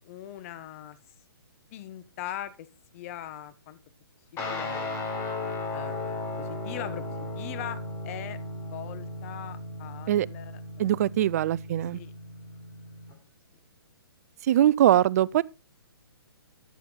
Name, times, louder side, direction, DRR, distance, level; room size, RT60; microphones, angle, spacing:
voice 1, 0.0-1.0 1.7-2.7 2.9-3.8 4.3-5.0 5.7-7.0 7.3-7.8 8.0-8.4 8.7-10.9 11.9-12.1, left 12 dB, 35° left, 1.3 m, -40 dB
Guitar, 4.4-13.1, left 2 dB, 20° left, 3.7 m, -36 dB
voice 2, 10.8-12.0 14.4-15.4, right 12 dB, 40° right, 0.5 m, -22 dB
13.5 x 8.3 x 4.0 m
hypercardioid pair, 145°, 13 cm